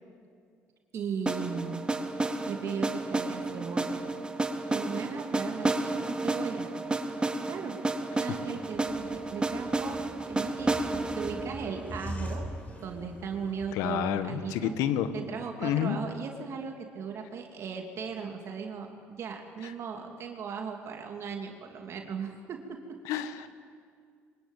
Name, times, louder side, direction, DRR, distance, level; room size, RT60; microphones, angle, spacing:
voice 1, 0.9-1.8 2.5-4.0 4.7-6.7 7.5-7.8 8.2-14.7 15.1-22.8, right 6 dB, 55° right, 3 dB, 2.7 m, -37 dB
sound 1, 1.3-13.2, right 2 dB, 15° right, 2.2 m, -32 dB
sound 2, 8.7-13.8, equal, 25° left, 4.3 m, -42 dB
voice 2, 13.7-15.1 15.6-16.0 19.6-19.7 23.0-23.5, left 10 dB, 75° left, 12 dB, 1.4 m, -29 dB
24.0 x 21.5 x 9.1 m, 2.1 s
supercardioid pair, 70°, 6 cm